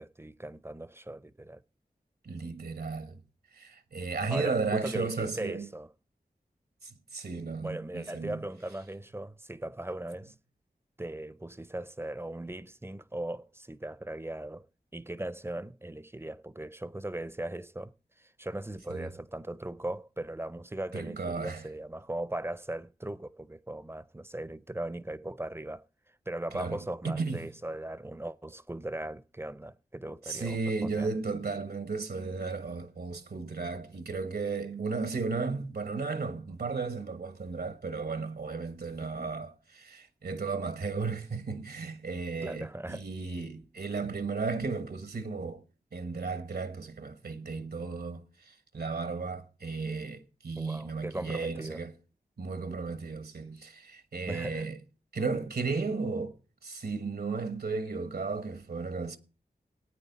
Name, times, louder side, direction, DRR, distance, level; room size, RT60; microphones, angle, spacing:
voice 1, 0.0-1.6 4.3-5.9 7.6-10.3 11.0-14.7 14.9-25.8 26.3-31.1 39.2-39.4 42.4-43.0 50.6-51.8 54.3-54.7, right 1 dB, 15° right, 0.5 m, -38 dB
voice 2, 2.2-3.2 3.5-5.7 6.8-8.4 18.9-19.1 20.9-21.6 26.5-27.5 30.2-45.6 45.9-51.9 52.4-54.8 55.1-56.4 56.6-59.2, right 4 dB, 85° right, 1.3 m, -34 dB
17.0 x 9.1 x 4.0 m
wide cardioid pair, 70°, 16 cm